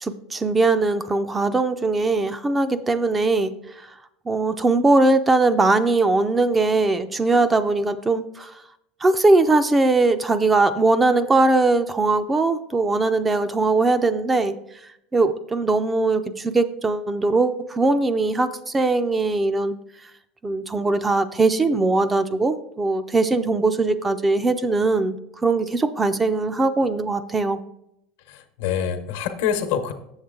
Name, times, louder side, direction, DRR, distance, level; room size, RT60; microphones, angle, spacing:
voice 1, 0.0-3.5 4.3-8.5 9.0-14.6 15.1-19.8 20.4-25.2 25.4-27.6, right 3 dB, 15° right, 11 dB, 0.4 m, -20 dB
voice 2, 28.3-29.9, left 8 dB, 80° left, 8 dB, 0.9 m, -26 dB
7.1 x 6.9 x 3.7 m, 0.79 s
supercardioid pair, 125°, 0 cm